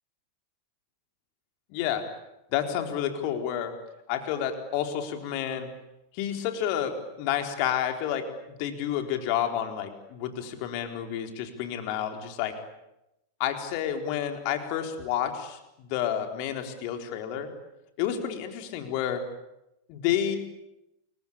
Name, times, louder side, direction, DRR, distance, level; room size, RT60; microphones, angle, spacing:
voice 1, 1.7-2.0 2.5-3.7 4.1-5.7 6.1-8.2 8.6-12.5 13.4-17.5 18.0-19.2 19.9-20.4, left 10 dB, 45° left, 5 dB, 4.2 m, -30 dB
29.5 x 23.0 x 8.7 m, 0.90 s
figure-of-eight pair, 90°, 0 cm